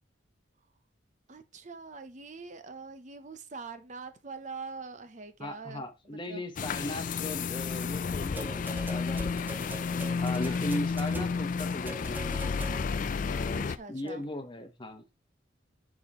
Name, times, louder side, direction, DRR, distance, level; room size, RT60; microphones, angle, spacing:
voice 1, 1.3-6.4 13.5-14.2, right 4 dB, 40° right, 0.7 m, -44 dB
voice 2, 5.4-9.7 10.2-12.5 13.2-15.0, left 1 dB, 25° left, 1.1 m, -38 dB
sound 1, 6.6-13.8, left 5 dB, 45° left, 0.4 m, -31 dB
sound 2, 8.4-13.1 14.1-14.2, right 2 dB, 10° right, 0.9 m, -43 dB
10.5 x 5.0 x 3.0 m
head